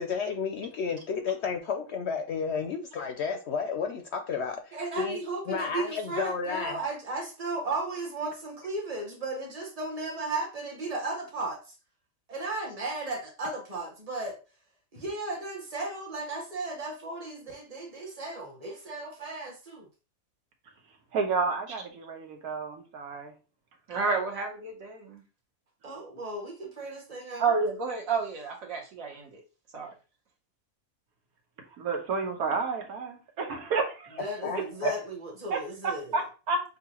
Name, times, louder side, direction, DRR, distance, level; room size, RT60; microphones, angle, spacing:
voice 1, 0.0-5.2 5.5-6.8 34.4-34.9, left 5 dB, 65° left, 0.7 m, -32 dB
voice 2, 4.7-11.7 12.3-14.4 14.9-19.9 25.8-27.5 34.2-36.2, right 2 dB, 25° right, 1.2 m, -35 dB
voice 3, 21.1-23.3 31.8-34.2 34.5-34.6 35.5-36.6, right 4 dB, 85° right, 1.5 m, -31 dB
voice 4, 23.9-25.2 27.4-29.4 29.7-29.9, right 4 dB, 70° right, 1.6 m, -30 dB
6.5 x 2.4 x 2.9 m
omnidirectional pair, 1.5 m